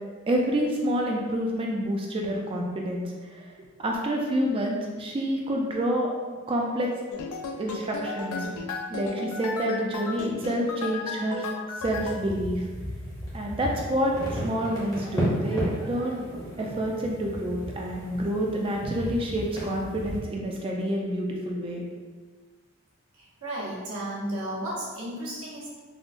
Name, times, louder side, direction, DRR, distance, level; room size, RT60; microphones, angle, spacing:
voice 1, 0.3-6.1 6.5-6.9 7.6-8.5 8.9-11.4 11.8-12.7 13.3-16.3 16.6-21.9, equal, 25° right, -1 dB, 0.3 m, -28 dB
sound 1, 7.1-12.2, left 4 dB, 85° left, 0.4 m, -35 dB
sound 2, 11.8-20.2, equal, 15° left, 0.7 m, -34 dB
voice 2, 23.1-25.7, right 1 dB, 80° right, -7 dB, 0.9 m, -34 dB
3.6 x 2.0 x 2.5 m, 1.4 s
head